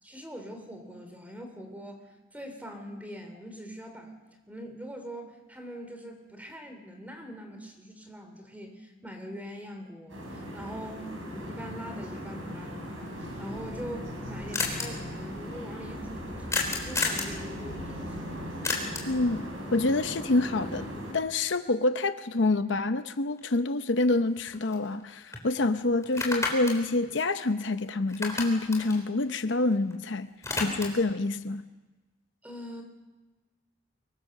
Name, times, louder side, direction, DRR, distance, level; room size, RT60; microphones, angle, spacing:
voice 1, 0.0-4.1 4.5-13.1 13.4-18.4 32.4-32.8, equal, 10° right, 5 dB, 3.3 m, -43 dB
sound 1, 10.1-21.1, equal, 75° right, 5.8 m, -38 dB
sound 2, 14.5-14.9 16.5-17.3 18.6-19.2 23.4-23.5 23.9-25.0 25.3-25.5 26.0-27.8 28.1-29.9 30.2-31.1, left 3 dB, 15° left, 3.7 m, -32 dB
voice 2, 19.1-19.4 19.7-20.9 21.1-30.3 30.6-31.6, left 2 dB, 65° left, 10 dB, 0.7 m, -27 dB
24.5 x 22.5 x 6.6 m, 1.2 s
head